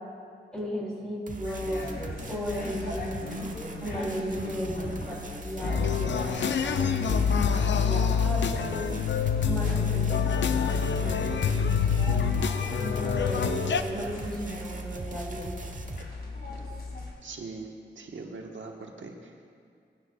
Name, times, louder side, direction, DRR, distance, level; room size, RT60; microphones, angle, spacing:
voice 1, 0.5-1.8 2.3-3.4 3.8-8.9 9.4-12.2 12.8-15.5, equal, 5° left, -5 dB, 2.9 m, -35 dB
sound 1, 1.3-16.0, right 2 dB, 40° right, 1.0 m, -39 dB
sound 2, 1.4-17.1, left 2 dB, 55° left, 2.2 m, -38 dB
sound 3, 5.6-13.8, left 7 dB, 70° left, 0.5 m, -26 dB
voice 2, 17.2-17.7 18.0-19.4, right 3 dB, 75° right, 2 dB, 1.2 m, -41 dB
18.0 x 9.8 x 2.3 m, 2.3 s
cardioid pair, 50°, 20 cm